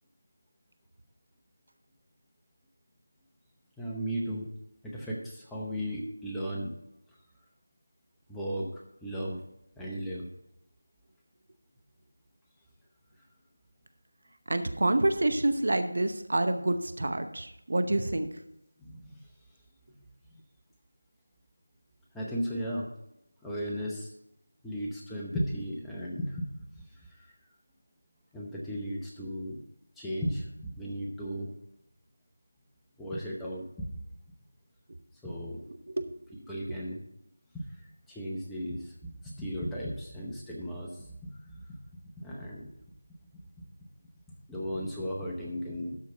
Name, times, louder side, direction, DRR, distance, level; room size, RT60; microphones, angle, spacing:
voice 1, 3.8-4.5 4.8-6.8 8.3-9.4 9.8-10.3 18.8-19.1 22.1-22.9 23.4-24.1 24.6-26.5 26.8-27.3 28.3-29.6 30.0-31.5 33.0-33.9 35.2-35.6 36.5-37.0 37.5-41.8 42.2-42.7 44.5-46.0, equal, ahead, -5 dB, 0.7 m, -36 dB
voice 2, 14.5-18.3 35.9-36.1 36.7-36.8, right 2 dB, 55° right, 8 dB, 0.9 m, -27 dB
12.5 x 4.6 x 5.5 m, 0.80 s
figure-of-eight pair, 170°, 0 cm